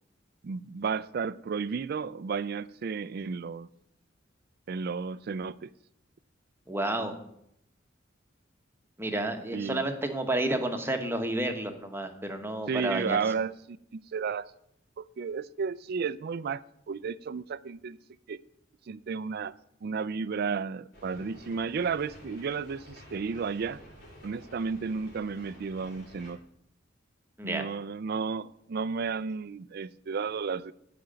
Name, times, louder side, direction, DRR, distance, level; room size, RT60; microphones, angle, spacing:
voice 1, 0.4-3.7 4.7-5.7 9.5-9.8 12.7-14.5 15.0-16.6 16.9-18.0 18.3-18.4 18.9-19.5 19.8-23.8 24.2-26.4 27.4-30.7, right 5 dB, 55° right, 0.4 m, -33 dB
voice 2, 6.7-7.2 9.0-13.2 27.4-27.7, right 1 dB, 10° right, 1.2 m, -30 dB
sound 1, 20.9-26.3, equal, 55° left, 4.9 m, -51 dB
13.5 x 5.1 x 8.8 m
head